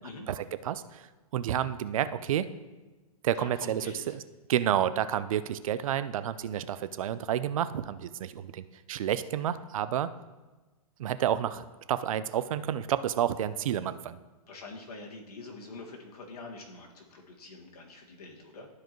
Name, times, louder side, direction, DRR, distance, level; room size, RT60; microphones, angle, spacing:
voice 1, 0.3-1.1 1.3-2.5 3.2-3.9 4.5-10.1 11.0-14.2, right 10 dB, 60° right, 14 dB, 0.5 m, -30 dB
voice 2, 3.3-4.2 14.5-18.7, left 3 dB, 80° left, -1 dB, 1.9 m, -45 dB
12.5 x 4.8 x 3.0 m, 1.2 s
hypercardioid pair, 150°, 19 cm